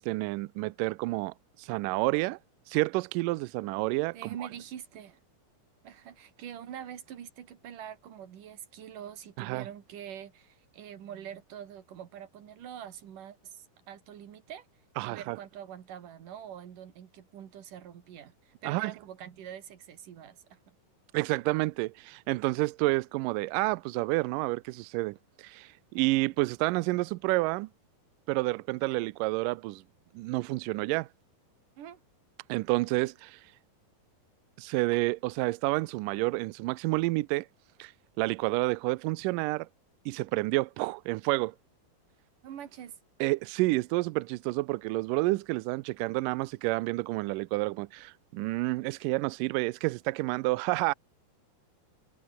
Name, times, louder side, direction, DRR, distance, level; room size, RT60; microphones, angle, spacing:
voice 1, 0.0-2.4 2.7-4.4 9.4-9.7 15.0-15.4 18.6-18.9 21.1-27.7 28.3-29.8 30.1-31.1 32.5-33.4 34.6-37.5 37.8-37.9 38.2-39.7 40.1-41.6 43.2-50.9, right 22 dB, 85° right, 1.9 m, -29 dB
voice 2, 4.1-5.2 5.8-14.7 15.0-20.6 26.0-26.1 31.8-32.0 42.4-43.0, right 9 dB, 60° right, 3.6 m, -45 dB
omnidirectional pair, 4.5 m